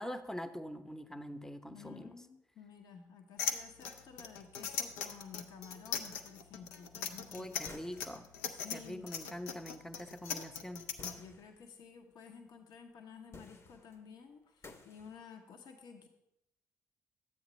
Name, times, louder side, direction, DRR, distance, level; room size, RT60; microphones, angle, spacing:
voice 1, 0.0-2.2 7.3-8.3 8.7-10.8, equal, 5° left, 10 dB, 0.7 m, -44 dB
voice 2, 1.7-7.5 8.5-9.1 11.0-16.1, left 6 dB, 65° left, 4 dB, 0.9 m, -53 dB
sound 1, 3.4-11.1, left 7 dB, 85° left, 0.5 m, -39 dB
sound 2, 7.6-8.4 11.0-11.7 12.7-12.8 13.3-14.0 14.6-15.2, left 3 dB, 35° left, 0.9 m, -54 dB
10.5 x 8.0 x 3.1 m, 0.85 s
hypercardioid pair, 45°, 8 cm